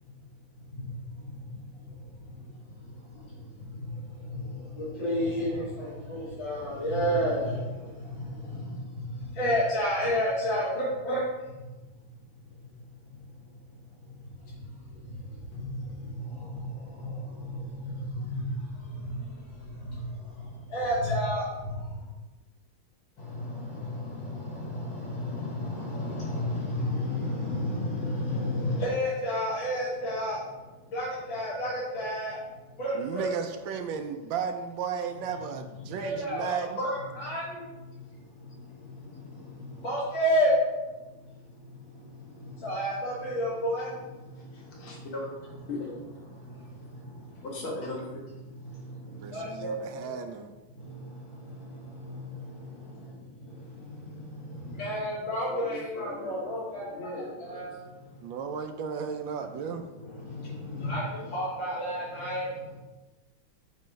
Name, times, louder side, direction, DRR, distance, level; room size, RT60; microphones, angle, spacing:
voice 1, 5.0-7.6 9.4-11.2 20.7-21.4 25.3-25.4 25.7-30.4 30.9-32.3 32.8-33.3 36.0-37.4 39.8-40.5 42.6-43.8 49.3-49.7 54.8-56.8 57.5-57.7 60.8-61.0 61.3-62.4, equal, 70° left, -10 dB, 2.5 m, -29 dB
voice 2, 32.9-36.8 49.1-50.5 58.2-59.9, right 7 dB, 75° right, 7 dB, 1.3 m, -34 dB
voice 3, 44.3-45.3 45.7-45.9 46.5-46.6 47.4-48.4 55.5-57.8, left 2 dB, 90° left, -3 dB, 2.4 m, -39 dB
7.6 x 3.1 x 5.1 m, 1.1 s
omnidirectional pair, 2.2 m